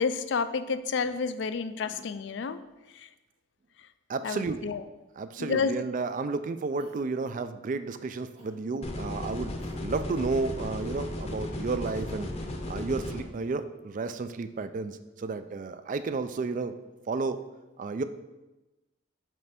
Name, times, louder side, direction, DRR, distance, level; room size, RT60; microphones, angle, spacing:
voice 1, 0.0-2.6 4.2-4.8 5.4-5.8, left 5 dB, 60° left, 12 dB, 0.4 m, -29 dB
voice 2, 4.1-4.7 5.2-12.3 12.7-16.7 17.1-17.4 17.8-18.0, right 3 dB, 40° right, 11 dB, 0.3 m, -32 dB
Cough, 6.8-7.6 8.3-8.6 9.6-9.8 10.1-10.3, equal, 85° right, 2.0 m, -54 dB
sound 1, 8.8-13.2, left 1 dB, 30° left, 0.7 m, -35 dB
7.5 x 3.3 x 5.8 m, 1.0 s
head